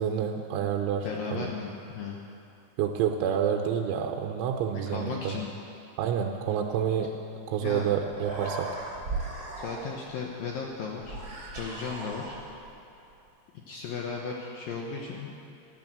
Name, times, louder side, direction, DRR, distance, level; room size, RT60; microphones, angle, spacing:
voice 1, 0.0-1.1 1.3-1.5 2.8-5.3 6.0-7.2 7.5-8.7, right 8 dB, 90° right, 3 dB, 3.2 m, -28 dB
voice 2, 1.0-2.2 4.9-5.5 7.6-7.9 9.6-11.2 11.6-12.4 13.7-15.3, left 5 dB, 75° left, -1 dB, 2.2 m, -35 dB
Human voice, 8.1-10.1 11.0-12.7, right 2 dB, 25° right, 2.8 m, -37 dB
14.0 x 13.0 x 7.7 m, 2.7 s
omnidirectional pair, 5.4 m